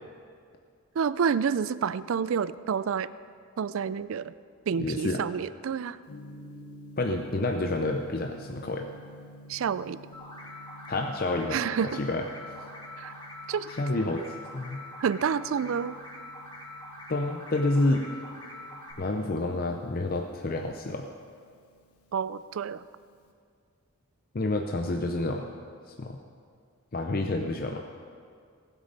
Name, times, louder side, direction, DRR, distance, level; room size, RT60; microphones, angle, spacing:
voice 1, 1.0-3.1 3.6-4.3 4.7-6.0 9.5-10.0 11.5-12.0 13.0-13.1 13.5-13.7 15.0-16.0 22.1-22.8, right 7 dB, 65° right, 16 dB, 0.4 m, -28 dB
voice 2, 4.8-5.2 7.0-8.9 10.9-11.6 11.9-12.3 13.7-14.2 14.5-14.8 17.1-18.1 19.0-21.1 24.3-25.5 26.0-26.2 26.9-27.8, left 2 dB, 45° left, 4 dB, 0.6 m, -28 dB
Gong, 6.1-23.3, equal, 85° left, 1.2 m, -51 dB
sound 1, 10.1-18.9, left 1 dB, 20° left, 2.0 m, -44 dB
18.5 x 8.2 x 5.2 m, 2.2 s
head